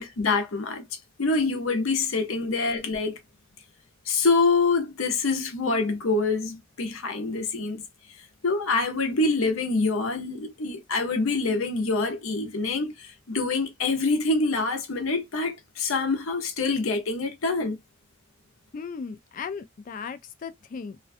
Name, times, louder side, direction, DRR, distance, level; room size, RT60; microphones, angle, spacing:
voice 1, 0.0-3.2 4.1-7.8 8.4-17.8, left 3 dB, 80° left, 0.7 m, -26 dB
voice 2, 18.7-21.1, left 5 dB, 40° left, 0.3 m, -37 dB
2.5 x 2.2 x 2.5 m
head